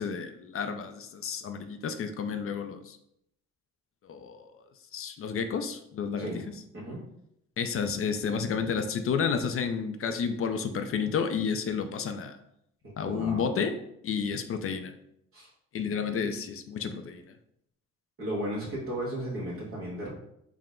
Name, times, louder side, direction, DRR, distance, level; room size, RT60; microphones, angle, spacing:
voice 1, 0.0-3.0 4.1-4.5 4.9-6.3 7.6-12.4 13.0-13.8 14.0-14.9 15.7-17.2, left 6 dB, 45° left, 8 dB, 0.5 m, -31 dB
voice 2, 12.8-13.4 15.3-15.5 18.2-20.1, right 1 dB, 45° right, -7 dB, 1.3 m, -35 dB
4.7 x 2.1 x 3.7 m, 0.76 s
cardioid pair, 90°, 30 cm